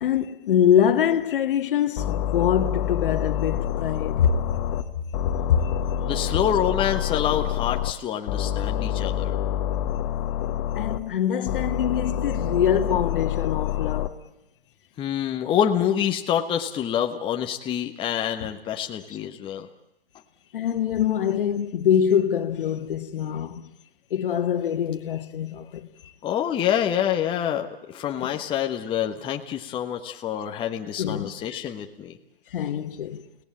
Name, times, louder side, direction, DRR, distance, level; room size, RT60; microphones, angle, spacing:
voice 1, 0.0-4.6 5.5-5.8 8.8-8.9 10.8-14.3 18.4-18.5 20.5-23.7 24.1-25.9 28.2-28.4 31.0-31.3 32.5-33.2, left 9 dB, 60° left, 1.9 m, -24 dB
sound 1, 2.0-4.8 5.1-7.9 8.3-11.0 11.5-14.1, left 10 dB, 40° left, 1.6 m, -27 dB
voice 2, 6.0-9.4 15.0-19.7 26.2-32.2, left 9 dB, 15° left, 1.3 m, -26 dB
30.0 x 18.5 x 8.5 m
hypercardioid pair, 140°, 30 cm